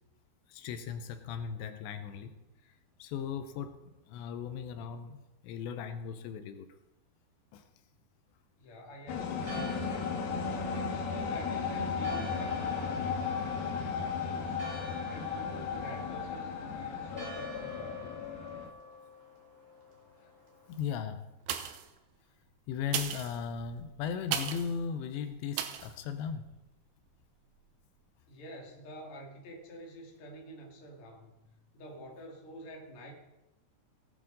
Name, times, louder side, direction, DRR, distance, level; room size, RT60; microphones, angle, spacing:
voice 1, 0.5-2.4 3.0-3.8 4.1-6.7 7.5-7.6 20.7-21.2 22.7-26.5, left 7 dB, 85° left, 9 dB, 2.9 m, -37 dB
voice 2, 8.6-10.1 10.5-18.2 28.3-31.3 31.7-33.1, equal, 40° left, -1 dB, 2.3 m, -48 dB
sound 1, 9.1-18.7, left 5 dB, 65° left, 2.9 m, -35 dB
Church bell, 9.3-20.8, left 2 dB, 25° right, 2.1 m, -48 dB
sound 2, 21.4-22.0 22.8-24.8 25.5-25.9 26.5-26.6, right 9 dB, 80° right, 2.4 m, -36 dB
18.0 x 8.5 x 3.9 m, 0.98 s
omnidirectional pair, 5.0 m